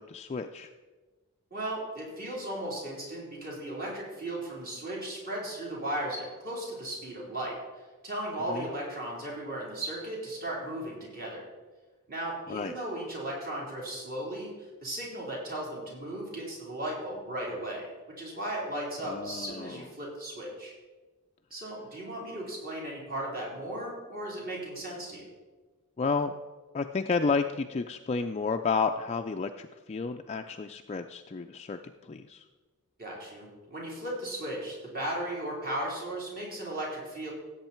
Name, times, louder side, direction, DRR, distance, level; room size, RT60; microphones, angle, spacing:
voice 1, 0.1-0.7 8.5-8.7 12.5-12.7 19.1-19.8 26.0-26.3 26.7-32.4, left 4 dB, 30° left, 5 dB, 0.4 m, -31 dB
voice 2, 1.5-11.4 12.1-17.9 18.2-20.7 21.5-25.3 33.0-37.3, right 1 dB, 45° right, -3 dB, 4.0 m, -36 dB
16.0 x 8.0 x 4.5 m, 1.3 s
head